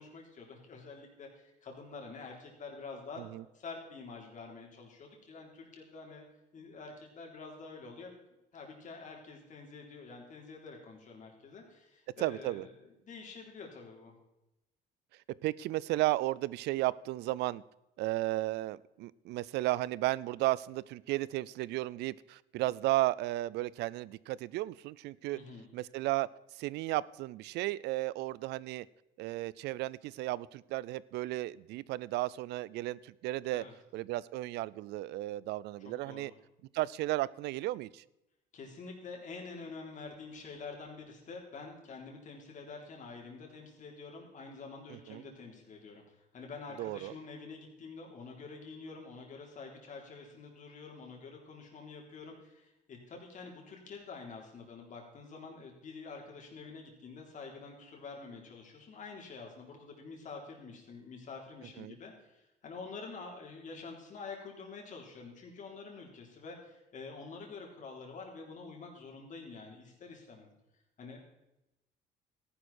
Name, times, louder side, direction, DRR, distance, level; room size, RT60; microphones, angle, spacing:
voice 1, 0.0-3.2 3.5-6.2 6.5-8.1 8.5-12.8 13.0-14.1 25.3-25.7 33.5-33.7 36.0-36.4 38.5-70.5 71.0-71.4, left 4 dB, 50° left, 1 dB, 3.8 m, -47 dB
voice 2, 12.2-12.7 15.4-17.6 18.0-25.4 25.7-26.3 26.5-28.9 29.2-33.6 33.9-36.3 36.7-38.0 44.9-45.2 46.8-47.1 61.8-62.0, right 17 dB, 80° right, 21 dB, 0.5 m, -34 dB
14.0 x 11.5 x 4.4 m, 0.90 s
cardioid pair, 110°, 17 cm